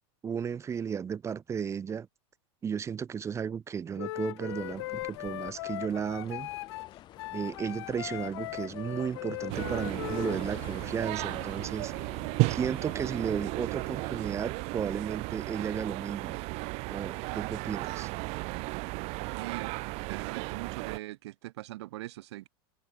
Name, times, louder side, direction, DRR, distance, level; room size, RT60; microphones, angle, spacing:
voice 1, 0.2-2.1 2.6-6.5 7.3-11.9 12.5-16.4 16.9-18.1, right 7 dB, 20° right, 3.8 m, -34 dB
Wind instrument woodwind instrument, 3.9-10.4, left 18 dB, 70° left, 4.9 m, -39 dB
sound 1, 4.5-14.4, left 13 dB, 35° left, 3.3 m, -49 dB
sound 2, 9.5-21.0, right 27 dB, 50° right, 2.0 m, -34 dB
voice 2, 19.3-22.5, right 17 dB, 75° right, 6.0 m, -41 dB
supercardioid pair, 150°, 14 cm